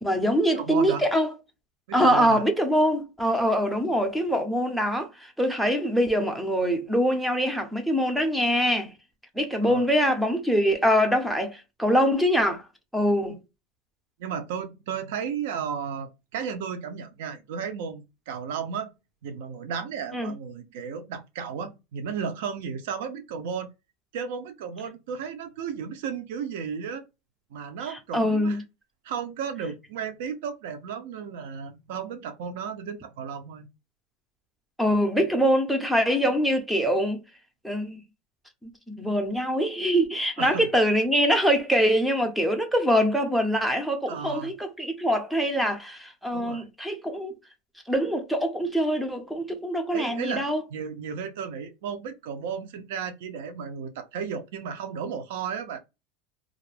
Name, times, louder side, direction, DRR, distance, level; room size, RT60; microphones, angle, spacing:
voice 1, 0.0-1.3 1.9-8.9 9.3-12.7 12.9-13.4 20.1-20.3 27.9-28.6 34.8-37.2 37.6-38.0 38.6-47.3 47.9-50.6, equal, ahead, 0.4 m, -24 dB
voice 2, 0.5-1.0 1.9-2.4 9.6-9.8 14.2-18.9 19.2-23.7 24.1-27.0 27.5-28.6 29.0-33.7 40.4-40.7 44.1-44.5 46.3-46.7 49.9-50.4 50.7-55.8, right 7 dB, 65° right, 0.5 m, -34 dB
2.4 x 2.0 x 3.2 m
supercardioid pair, 180°, 0 cm